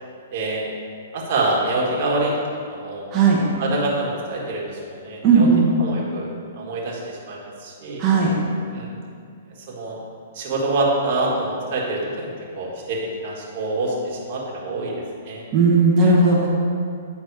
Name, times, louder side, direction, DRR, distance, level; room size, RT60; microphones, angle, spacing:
voice 1, 0.3-0.7 1.1-2.3 2.7-3.1 3.6-5.5 5.8-6.3 6.6-8.0 8.7-8.9 9.7-10.0 10.3-14.9 15.3-15.4, right 2 dB, 45° right, -3 dB, 1.7 m, -26 dB
voice 2, 5.2-5.7 8.0-8.3 15.5-16.5, right 4 dB, 25° right, -4 dB, 1.2 m, -16 dB
9.5 x 4.1 x 4.8 m, 2.3 s
hypercardioid pair, 155°, 0 cm